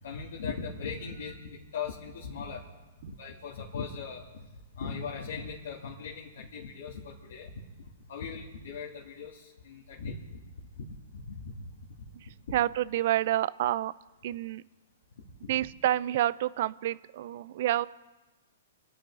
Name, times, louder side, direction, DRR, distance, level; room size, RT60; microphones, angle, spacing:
voice 1, 0.0-2.6 3.1-4.5 4.7-7.5 8.1-10.4 10.8-10.9 11.1-11.7 12.5-12.6 15.4-15.5, left 5 dB, 70° left, -5 dB, 2.6 m, -39 dB
voice 2, 12.1-13.9 14.2-14.6 15.5-17.9, right 13 dB, 55° right, 19 dB, 0.5 m, -29 dB
26.5 x 9.2 x 5.0 m, 1.2 s
hypercardioid pair, 125°, 0 cm